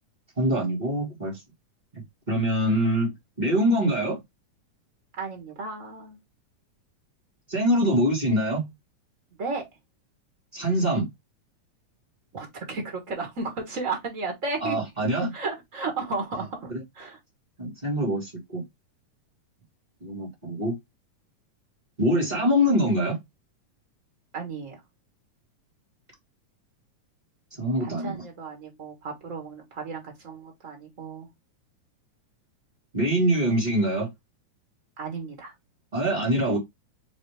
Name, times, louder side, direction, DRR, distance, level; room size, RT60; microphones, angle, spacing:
voice 1, 0.4-1.4 2.3-4.2 7.5-8.6 10.5-11.1 14.6-15.3 16.7-16.8 17.6-18.6 20.0-20.8 22.0-23.2 27.6-28.2 32.9-34.1 35.9-36.6, equal, 25° right, 1.0 m, -24 dB
voice 2, 5.2-6.2 9.4-9.6 12.3-14.8 15.3-17.2 24.3-24.8 27.8-31.3 35.0-35.5, right 4 dB, 60° right, 0.8 m, -34 dB
6.1 x 2.6 x 3.2 m
omnidirectional pair, 3.6 m